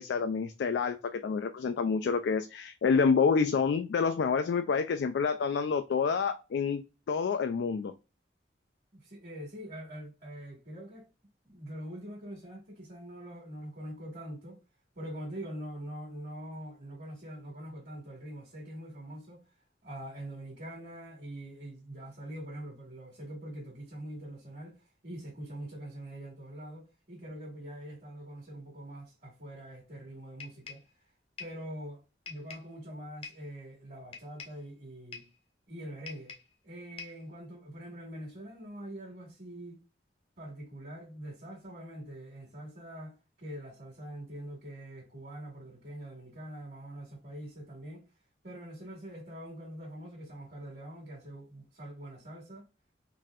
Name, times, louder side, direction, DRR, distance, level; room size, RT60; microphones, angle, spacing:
voice 1, 0.0-7.9, left 5 dB, 80° left, 0.3 m, -28 dB
voice 2, 8.9-11.1 11.4-14.6 14.9-19.4 19.8-31.1 31.4-35.2 35.7-36.3 36.6-39.8 40.4-48.0 48.4-52.7, right 1 dB, 50° right, 1.4 m, -44 dB
sound 1, 30.4-30.9 31.4-31.6 32.3-32.7 33.2-33.5 34.1-34.6 35.1-35.4 36.1-36.5 37.0-37.3, left 5 dB, 35° left, 0.8 m, -46 dB
3.9 x 2.7 x 2.3 m
head